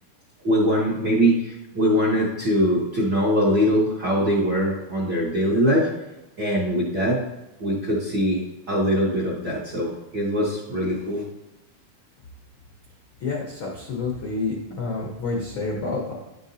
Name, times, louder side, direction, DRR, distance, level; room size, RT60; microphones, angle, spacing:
voice 1, 0.4-5.9 6.4-7.2 7.6-11.2, equal, 55° right, -7 dB, 1.2 m, -22 dB
voice 2, 13.2-16.1, left 3 dB, 75° left, -2 dB, 1.1 m, -28 dB
10.5 x 5.3 x 2.7 m, 0.96 s
omnidirectional pair, 3.8 m